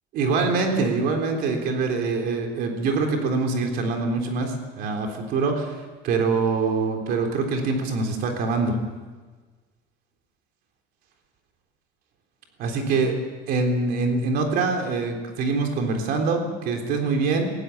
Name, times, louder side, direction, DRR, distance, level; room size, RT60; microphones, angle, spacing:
voice 1, 0.1-5.8 6.0-8.8 12.6-13.1 13.5-17.5, right 4 dB, 55° right, 3 dB, 3.7 m, -24 dB
19.0 x 16.0 x 8.6 m, 1.4 s
cardioid pair, 160°, 19 cm